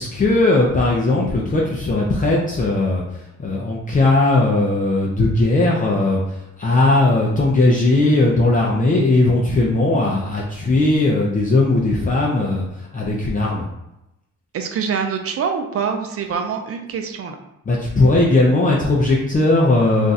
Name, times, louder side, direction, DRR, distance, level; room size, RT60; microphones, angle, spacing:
voice 1, 0.0-13.7 17.7-20.1, left 2 dB, 25° left, -3 dB, 0.6 m, -18 dB
voice 2, 14.5-17.4, right 6 dB, 50° right, 4 dB, 0.6 m, -25 dB
2.6 x 2.3 x 4.0 m, 0.88 s
cardioid pair, 90°, 30 cm